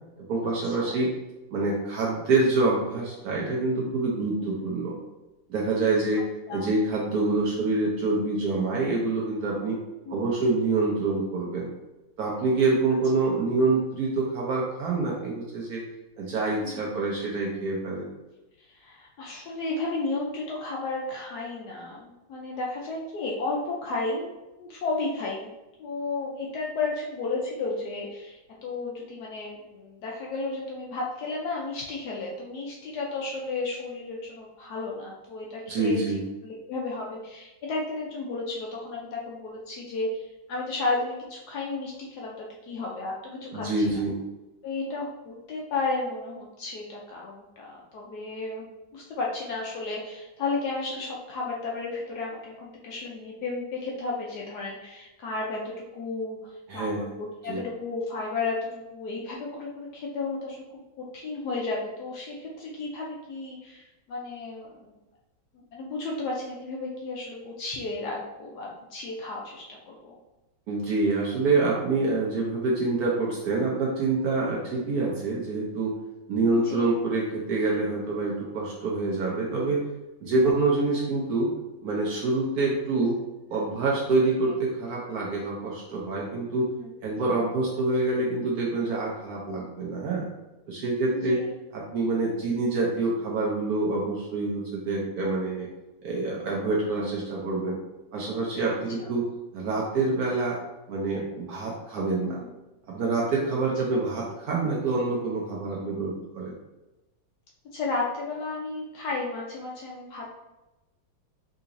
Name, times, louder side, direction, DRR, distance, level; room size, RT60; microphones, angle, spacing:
voice 1, 0.3-1.1 1.5-4.9 5.5-6.2 6.5-9.8 10.1-11.7 12.2-15.8 16.2-18.1 35.7-36.2 43.5-44.1 56.7-57.0 57.4-57.6 70.7-75.9 76.3-79.8 80.2-81.5 81.8-83.2 83.5-86.7 87.0-90.3 90.7-91.4 91.7-95.7 96.0-97.8 98.1-99.3 99.5-100.6 100.9-102.4 102.9-106.5, right 3 dB, 70° right, -3 dB, 1.0 m, -26 dB
voice 2, 18.6-24.3 24.6-25.5 25.8-43.7 43.9-44.0 44.6-60.6 61.1-65.0 65.7-70.2 76.5-76.8 80.3-80.6 84.5-84.6 86.7-86.9 91.1-91.4 99.0-99.1 102.2-102.5 103.9-104.0 107.7-110.3, left 3 dB, 70° left, -2 dB, 1.0 m, -33 dB
3.8 x 2.9 x 2.5 m, 1.0 s
omnidirectional pair, 2.1 m